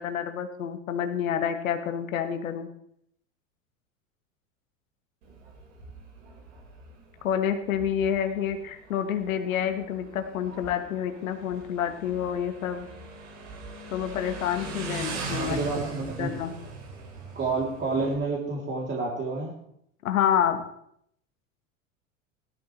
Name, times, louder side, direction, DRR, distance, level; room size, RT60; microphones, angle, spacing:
voice 1, 0.0-2.7 7.2-12.9 13.9-15.6 16.2-16.5 20.0-20.6, left 9 dB, 80° left, 7 dB, 1.5 m, -28 dB
Motorcycle, 5.2-18.1, right 3 dB, 75° right, 5.0 m, -40 dB
voice 2, 15.3-16.3 17.3-19.5, right 3 dB, 25° right, -4 dB, 3.2 m, -29 dB
17.0 x 12.5 x 3.3 m, 0.72 s
hypercardioid pair, 95°, 40 cm